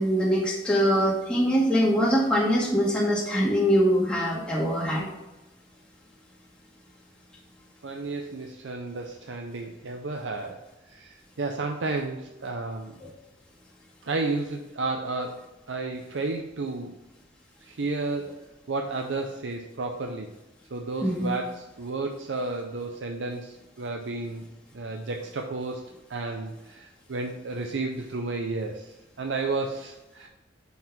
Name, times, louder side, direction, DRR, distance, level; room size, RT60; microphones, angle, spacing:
voice 1, 0.0-5.1 13.0-13.1 21.0-21.3, equal, 5° left, -5 dB, 1.3 m, -23 dB
voice 2, 7.8-13.0 14.0-17.0 17.6-18.3 18.7-20.3 20.7-24.5 24.7-30.3, right 3 dB, 75° right, 3 dB, 0.6 m, -32 dB
5.8 x 4.6 x 5.8 m, 0.99 s
head